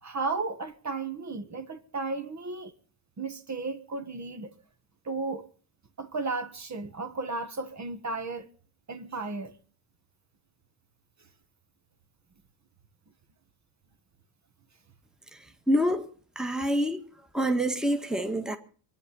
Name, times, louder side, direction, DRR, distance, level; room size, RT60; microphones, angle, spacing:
voice 1, 0.0-2.8 3.2-4.6 5.0-5.5 6.0-8.5 8.9-9.5, right 3 dB, 35° right, 1.6 m, -34 dB
voice 2, 15.7-16.1 16.4-17.0 17.3-18.6, equal, ahead, 1.7 m, -26 dB
24.0 x 10.0 x 5.5 m
cardioid pair, 95°, 49 cm